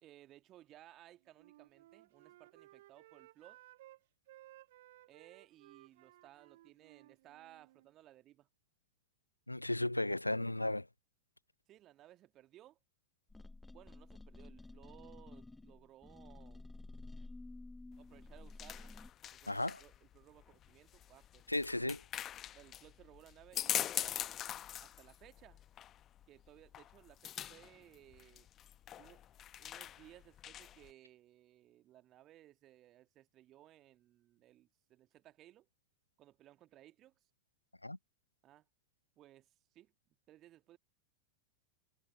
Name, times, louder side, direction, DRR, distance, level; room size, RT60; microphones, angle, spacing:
voice 1, 0.0-3.6 5.1-8.5 11.7-12.8 13.7-16.6 18.0-18.9 19.3-21.4 22.5-24.4 24.8-25.6 26.3-28.5 29.0-29.2 29.6-35.7 36.2-37.1 38.4-38.6 39.2-39.5 39.7-39.9 40.3-40.8, right 14 dB, 35° right, 1.8 m, -61 dB
Wind instrument woodwind instrument, 1.3-4.0 4.3-7.9, right 16 dB, 55° right, 1.8 m, -60 dB
voice 2, 9.5-10.9 19.5-19.8 21.5-22.0 37.8-38.0, left 1 dB, 85° left, 0.4 m, -35 dB
sound 1, 13.3-19.1, left 2 dB, 5° left, 1.4 m, -52 dB
sound 2, 17.9-30.9, left 11 dB, 30° left, 1.0 m, -44 dB
figure-of-eight pair, 90°, 0 cm